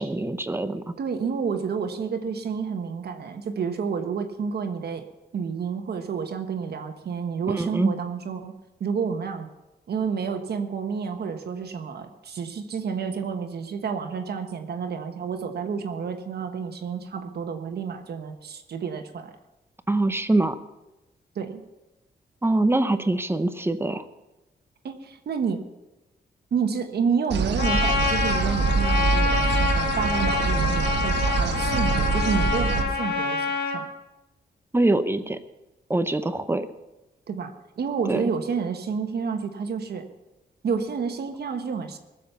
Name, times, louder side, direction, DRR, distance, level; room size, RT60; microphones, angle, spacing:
voice 1, 0.0-0.8 7.6-7.9 19.9-20.6 22.4-24.0 34.7-35.4 35.9-36.7 38.1-38.2, right 2 dB, 15° right, 10 dB, 0.8 m, -23 dB
voice 2, 1.0-5.0 5.3-8.5 8.8-9.5 9.9-19.3 21.3-21.6 24.8-25.6 26.5-33.9 37.3-40.1 40.6-42.0, right 6 dB, 65° right, 6 dB, 1.4 m, -29 dB
sound 1, 27.3-32.8, right 4 dB, 85° right, 1.4 m, -25 dB
Trumpet, 27.6-33.8, left 4 dB, 80° left, 4.6 m, -26 dB
21.0 x 7.4 x 7.0 m, 1.0 s
wide cardioid pair, 130°, 18 cm